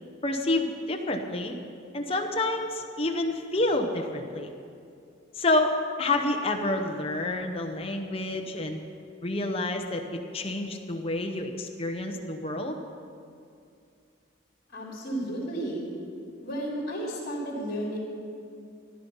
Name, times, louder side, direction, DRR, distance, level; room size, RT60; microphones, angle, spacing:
voice 1, 0.2-1.6 1.9-4.5 5.3-8.8 9.2-12.8, left 2 dB, 25° left, 3 dB, 0.9 m, -28 dB
voice 2, 14.7-15.8 16.4-18.0, right 1 dB, 45° left, -3 dB, 3.5 m, -33 dB
14.5 x 11.0 x 5.5 m, 2.5 s
head